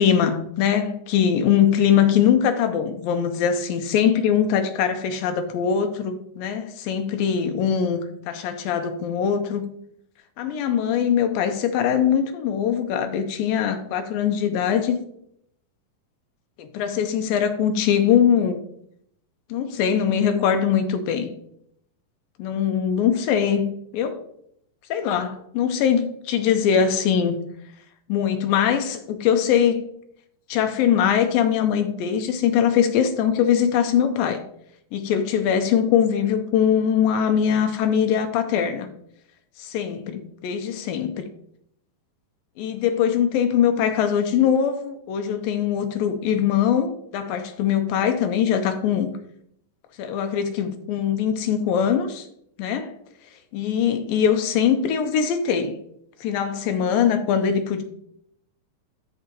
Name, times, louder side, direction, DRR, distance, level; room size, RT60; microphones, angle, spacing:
voice 1, 0.0-9.7 10.4-15.0 16.6-18.6 19.5-21.3 22.4-24.2 24.9-27.4 28.1-29.8 30.5-34.4 34.9-38.9 39.6-41.3 42.6-49.1 50.0-52.3 52.6-52.9 53.5-55.8 56.2-57.8, left 8 dB, 80° left, 7 dB, 2.4 m, -22 dB
13.0 x 4.8 x 2.9 m, 0.71 s
omnidirectional pair, 4.2 m